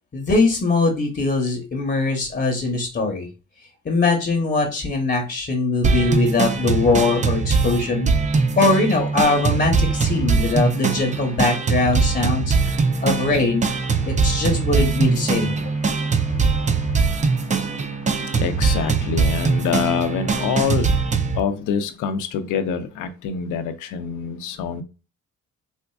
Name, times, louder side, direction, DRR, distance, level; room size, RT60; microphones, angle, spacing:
voice 1, 0.1-3.3 3.8-8.1 8.6-12.8 13.0-13.7 14.1-15.6, left 3 dB, 35° left, 1.0 m, -21 dB
sound 1, 5.8-21.4, right 4 dB, 25° right, 0.5 m, -21 dB
voice 2, 12.6-13.1 14.0-14.5 15.7-24.8, left 7 dB, 90° left, 0.6 m, -27 dB
4.3 x 2.4 x 2.3 m
cardioid pair, 90°, 30 cm